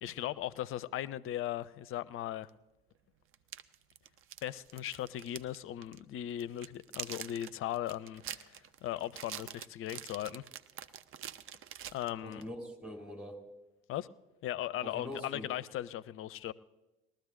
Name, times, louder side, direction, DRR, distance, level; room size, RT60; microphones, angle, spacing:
voice 1, 0.0-2.5 4.4-10.4 11.9-12.4 13.9-14.1 14.4-16.5, left 12 dB, 45° left, 0.5 m, -38 dB
sound 1, 2.5-2.6 3.3-5.6 5.8-6.0 6.4-12.5, right 10 dB, 45° right, 0.6 m, -45 dB
voice 2, 12.2-13.4 14.8-15.5, left 1 dB, 5° right, 3.7 m, -43 dB
20.5 x 13.0 x 2.6 m
figure-of-eight pair, 55°, 30 cm